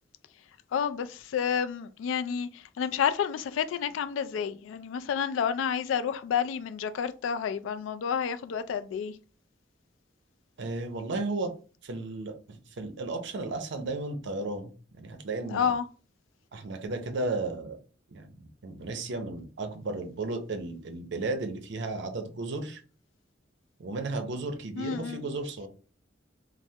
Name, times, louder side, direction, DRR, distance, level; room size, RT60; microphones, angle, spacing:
voice 1, 0.7-9.1 15.5-15.8 24.8-25.2, left 7 dB, 85° left, 0.3 m, -30 dB
voice 2, 10.6-11.5 11.8-15.7 16.5-17.8 18.1-22.8 23.8-25.7, right 2 dB, 65° right, 0.5 m, -34 dB
3.2 x 2.0 x 2.7 m
head